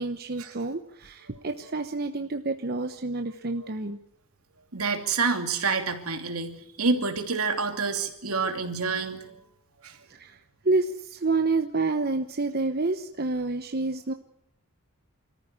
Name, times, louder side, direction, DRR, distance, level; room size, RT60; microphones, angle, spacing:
voice 1, 0.0-4.0 10.1-10.4 10.6-14.1, right 3 dB, 45° right, 7 dB, 1.0 m, -28 dB
voice 2, 4.7-9.4 9.8-10.0, right 4 dB, 80° right, 5 dB, 2.8 m, -28 dB
26.5 x 14.5 x 9.8 m, 0.77 s
head